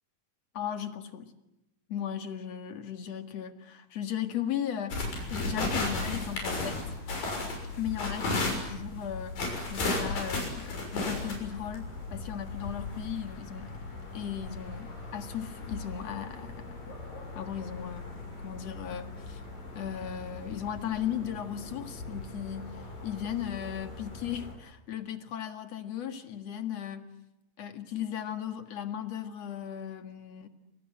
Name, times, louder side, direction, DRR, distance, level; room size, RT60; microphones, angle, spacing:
voice 1, 0.5-1.3 1.9-6.8 7.8-9.4 9.7-13.8 14.1-16.8 17.3-18.1 18.4-19.4 19.8-27.1 27.6-30.5, left 9 dB, 55° left, 8 dB, 2.7 m, -36 dB
sound 1, 4.9-24.5, left 2 dB, 80° left, 8.3 m, -36 dB
29.0 x 26.5 x 7.9 m, 0.92 s
omnidirectional pair, 4.0 m